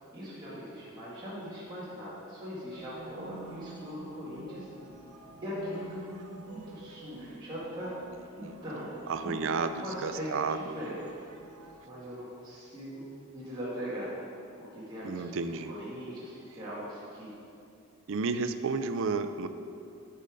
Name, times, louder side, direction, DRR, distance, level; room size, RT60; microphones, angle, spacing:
voice 1, 0.1-4.7 5.4-6.0 6.3-8.0 8.3-9.4 9.8-11.0 11.8-14.1 14.6-15.2 15.6-17.3, equal, 20° right, -11 dB, 1.8 m, -40 dB
sound 1, 2.7-11.8, right 3 dB, 90° right, 0.8 m, -49 dB
voice 2, 8.1-8.6 9.1-10.8 15.0-15.7 18.1-19.5, right 4 dB, 60° right, 10 dB, 0.4 m, -32 dB
9.8 x 5.3 x 5.0 m, 2.5 s
head